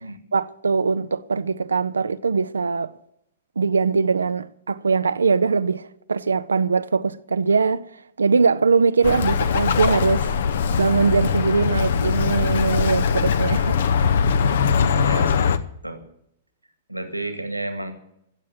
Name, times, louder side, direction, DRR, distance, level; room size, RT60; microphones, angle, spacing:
voice 1, 0.3-2.9 3.6-7.9 8.2-10.3 10.8-13.8, right 4 dB, 70° right, 0.4 m, -21 dB
Bird, 9.0-15.6, left 6 dB, 55° left, 0.7 m, -21 dB
voice 2, 15.0-15.6 15.8-16.0 16.9-17.9, right 2 dB, 90° right, 1.9 m, -31 dB
15.5 x 7.4 x 9.0 m
figure-of-eight pair, 105°, 0 cm